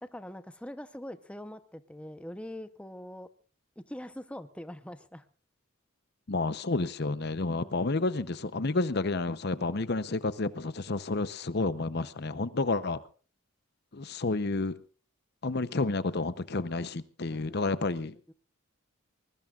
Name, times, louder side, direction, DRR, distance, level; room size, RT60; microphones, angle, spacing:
voice 1, 0.0-3.3 3.9-5.3 7.5-7.9 17.3-18.3, left 1 dB, 5° left, 0.8 m, -44 dB
voice 2, 6.3-13.0 13.9-14.8 15.4-18.1, left 3 dB, 50° left, 0.8 m, -30 dB
23.5 x 21.0 x 2.5 m
head